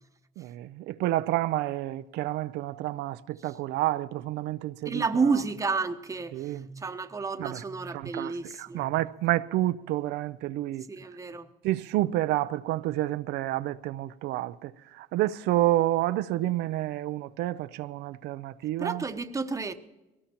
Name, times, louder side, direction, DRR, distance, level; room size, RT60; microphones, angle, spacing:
voice 1, 0.4-5.3 6.3-6.7 7.4-7.6 7.9-10.8 11.6-19.0, right 15 dB, 80° right, 0.5 m, -29 dB
voice 2, 4.8-8.9 10.9-11.5 18.8-19.7, right 4 dB, 20° right, 0.9 m, -30 dB
22.5 x 18.5 x 2.9 m
cardioid pair, 110°, 17 cm